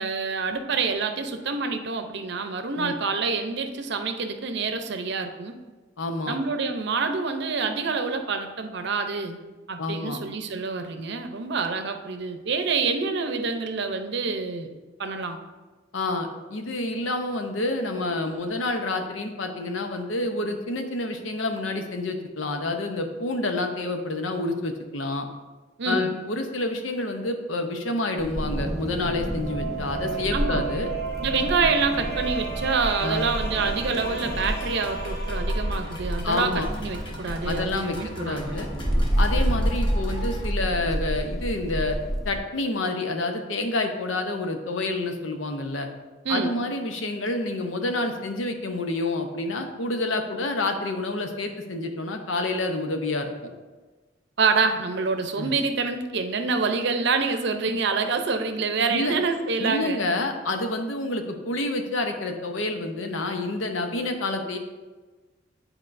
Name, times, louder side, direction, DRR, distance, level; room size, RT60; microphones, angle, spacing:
voice 1, 0.0-5.5 6.3-9.4 9.7-14.7 15.0-15.4 25.8-26.1 30.3-30.7 31.2-38.6 46.2-46.5 54.4-60.0, right 4 dB, 65° right, 6 dB, 0.6 m, -27 dB
voice 2, 6.0-6.4 9.8-10.2 15.9-25.3 25.9-30.9 33.0-33.3 36.2-36.7 37.4-38.7 39.2-42.0 42.2-45.9 46.3-53.3 55.4-55.5 58.9-59.2 59.6-64.6, left 2 dB, 85° left, 5 dB, 0.7 m, -28 dB
Wind, 28.2-42.4, equal, ahead, 0.7 m, -29 dB
sound 1, 28.6-36.3, right 5 dB, 60° left, 1.4 m, -34 dB
sound 2, 33.9-40.5, left 1 dB, 25° left, 1.1 m, -42 dB
9.8 x 4.5 x 2.6 m, 1.3 s
head